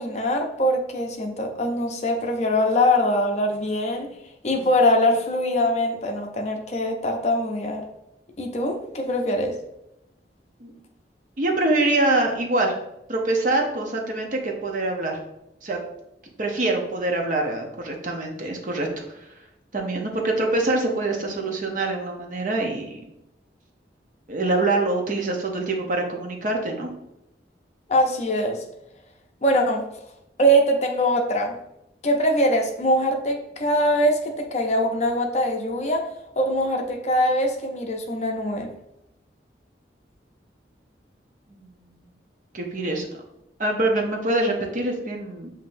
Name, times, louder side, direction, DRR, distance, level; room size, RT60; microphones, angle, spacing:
voice 1, 0.0-4.1 4.4-7.8 8.4-9.6 27.9-28.6 29.4-29.9 30.4-31.6 32.0-36.0 36.4-38.7, equal, 40° left, 3 dB, 0.5 m, -22 dB
voice 2, 11.4-12.7 13.1-15.2 15.6-15.8 16.4-19.3 19.7-23.0 24.3-26.9 41.5-41.9 42.5-43.2 43.6-45.5, right 2 dB, 45° right, 2 dB, 0.7 m, -25 dB
7.2 x 2.7 x 2.6 m, 0.85 s
head